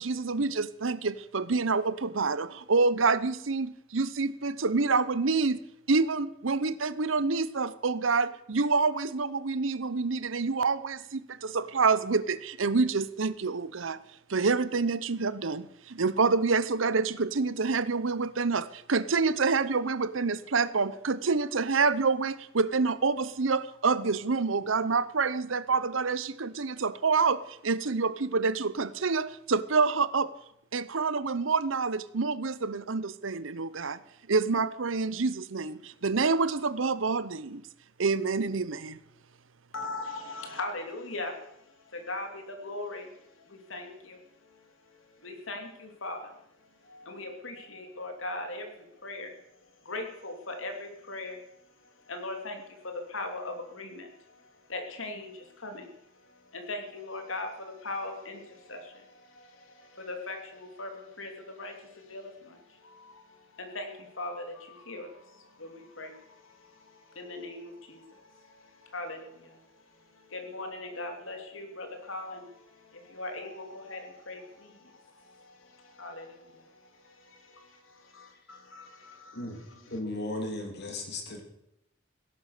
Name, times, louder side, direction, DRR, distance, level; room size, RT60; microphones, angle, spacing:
voice 1, 0.0-5.6 5.9-14.0 14.3-30.3 30.7-34.0 34.3-37.6 38.0-39.0, right 4 dB, 80° right, 17 dB, 0.8 m, -27 dB
voice 2, 39.7-41.4 41.9-43.2 43.5-44.2 45.2-46.3 46.8-49.3 49.8-51.4 52.1-54.1 54.7-55.9 56.5-68.6 68.9-69.6 70.2-76.7 77.0-79.4, left 2 dB, 80° left, 4 dB, 3.1 m, -40 dB
voice 3, 79.9-81.4, left 2 dB, 60° left, 3 dB, 3.0 m, -35 dB
17.0 x 11.0 x 6.7 m, 0.80 s
head